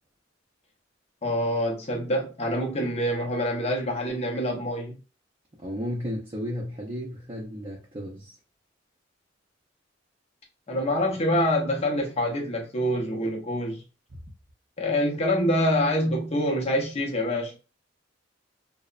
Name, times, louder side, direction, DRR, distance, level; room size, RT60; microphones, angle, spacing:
voice 1, 1.2-4.9 10.7-13.8 14.8-17.6, equal, 35° left, 0.7 m, -26 dB
voice 2, 5.6-8.3, equal, 25° right, 0.5 m, -33 dB
2.9 x 2.1 x 2.4 m
head